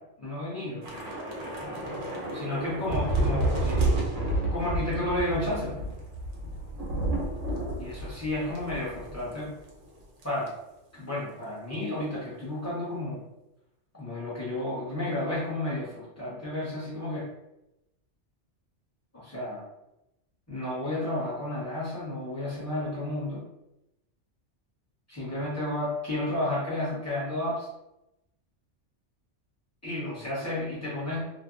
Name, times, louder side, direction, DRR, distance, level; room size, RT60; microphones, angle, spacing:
voice 1, 0.2-0.9 2.3-3.9 4.2-5.8 7.8-9.5 10.2-10.5 10.9-13.2 13.9-17.3 19.1-19.6 20.5-23.4 25.1-27.7 29.8-31.2, left 1 dB, 15° left, -8 dB, 0.9 m, -32 dB
Thunder / Rain, 0.8-9.4 9.7-9.9 10.2-10.5, right 2 dB, 85° right, 1.0 m, -30 dB
2.7 x 2.2 x 2.4 m, 0.90 s
omnidirectional pair, 1.2 m